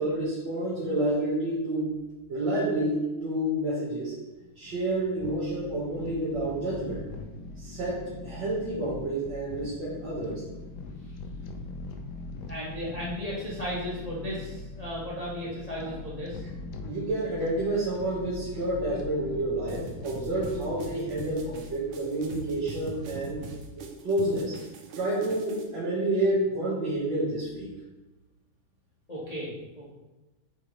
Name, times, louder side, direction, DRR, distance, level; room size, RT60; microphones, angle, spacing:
voice 1, 0.0-1.9 2.3-4.1 4.6-7.1 7.6-10.4 16.8-23.4 23.8-24.5 25.0-27.7, right 1 dB, 60° right, -8 dB, 2.0 m, -29 dB
sound 1, 4.0-23.4, left 3 dB, 70° left, 1.0 m, -42 dB
voice 2, 12.5-16.4 29.1-29.9, equal, 25° left, -8 dB, 0.9 m, -35 dB
sound 2, 19.7-25.7, right 4 dB, 80° right, 1.7 m, -42 dB
8.7 x 3.8 x 3.1 m, 1.1 s
omnidirectional pair, 2.4 m